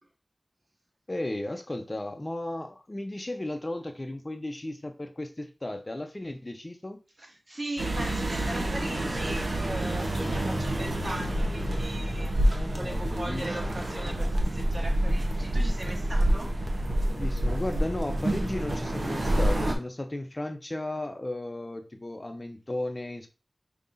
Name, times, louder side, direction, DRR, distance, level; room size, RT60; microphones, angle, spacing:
voice 1, 1.1-7.0 10.2-10.8 12.5-13.8 16.9-23.3, left 1 dB, 35° left, 6 dB, 0.7 m, -35 dB
voice 2, 7.2-16.5, right 1 dB, 55° right, 0 dB, 1.4 m, -39 dB
sound 1, 7.8-19.7, right 1 dB, 75° right, 0.8 m, -28 dB
5.3 x 2.9 x 2.6 m, 0.31 s
wide cardioid pair, 50°, 0 cm